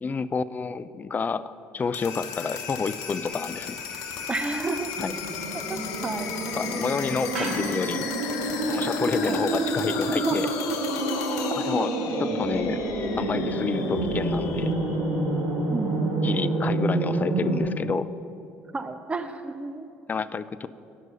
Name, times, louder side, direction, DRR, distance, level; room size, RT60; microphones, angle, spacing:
voice 1, 0.0-4.0 5.0-5.1 6.6-8.1 8.7-10.5 11.6-11.9 12.2-12.8 13.2-14.7 16.2-18.1 20.1-20.7, left 5 dB, 30° left, 14 dB, 0.4 m, -29 dB
sound 1, 1.8-15.6, left 6 dB, 70° left, 0.8 m, -35 dB
sound 2, 2.0-8.1, right 3 dB, 90° right, 1.0 m, -44 dB
voice 2, 4.3-4.9 5.7-6.3 9.3-9.4 10.0-10.5 15.7-16.6 18.7-19.9, right 3 dB, 20° right, 9 dB, 0.6 m, -31 dB
sound 3, 5.0-17.6, right 2 dB, 70° right, 2.0 m, -28 dB
9.7 x 6.1 x 6.7 m, 2.6 s
hypercardioid pair, 65°, 6 cm